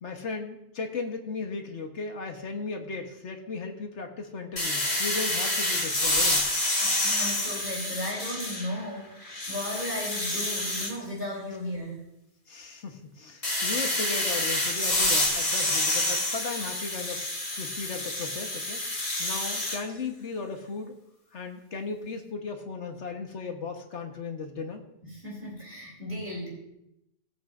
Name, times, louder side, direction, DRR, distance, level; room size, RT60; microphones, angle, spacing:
voice 1, 0.0-6.5 12.5-17.2 17.6-18.8 19.2-21.0 21.3-24.8, left 4 dB, 70° left, 4 dB, 1.6 m, -36 dB
sound 1, 4.6-8.8 9.2-10.9 13.4-19.8, left 1 dB, 30° left, 1.8 m, -28 dB
voice 2, 6.8-12.0 25.0-26.5, left 1 dB, 45° right, -4 dB, 3.7 m, -35 dB
19.5 x 8.1 x 2.6 m, 0.83 s
omnidirectional pair, 1.3 m